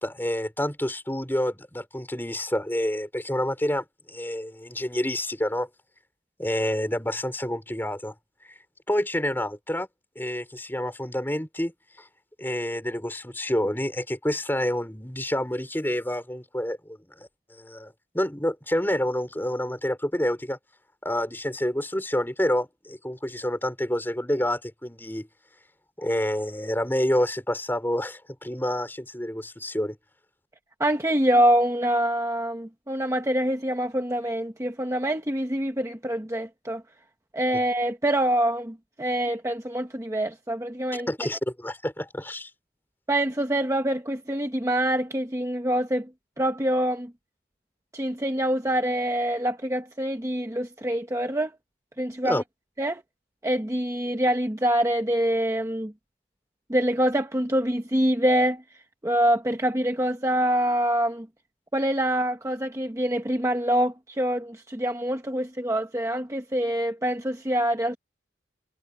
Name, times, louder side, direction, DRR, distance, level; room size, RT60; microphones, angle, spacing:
voice 1, 0.0-5.7 6.4-8.1 8.4-8.6 8.9-9.9 10.1-11.7 12.0-12.1 12.4-20.6 21.0-25.3 26.0-30.0 41.1-42.5 52.2-52.4, left 1 dB, 10° left, 4.6 m, -28 dB
voice 2, 30.8-36.8 37.3-41.1 43.1-46.1 46.4-47.1 47.9-51.5 52.0-52.4 52.8-53.0 53.4-55.9 56.7-58.6 59.0-61.3 61.7-68.0, right 1 dB, 15° right, 1.0 m, -25 dB
head